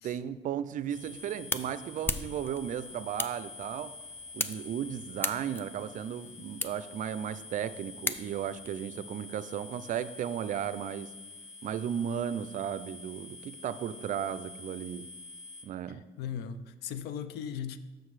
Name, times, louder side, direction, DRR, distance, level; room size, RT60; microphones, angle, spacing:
voice 1, 0.0-3.9 4.3-11.1 11.6-15.1 15.6-16.0, right 9 dB, 50° right, 14 dB, 0.4 m, -35 dB
sound 1, 0.8-8.7, left 2 dB, 15° left, 0.4 m, -39 dB
sound 2, 0.9-15.6, left 3 dB, 45° left, 1.3 m, -48 dB
voice 2, 15.9-17.8, left 8 dB, 75° left, 12 dB, 0.6 m, -38 dB
6.6 x 6.3 x 4.8 m, 1.2 s
cardioid pair, 110°, 17 cm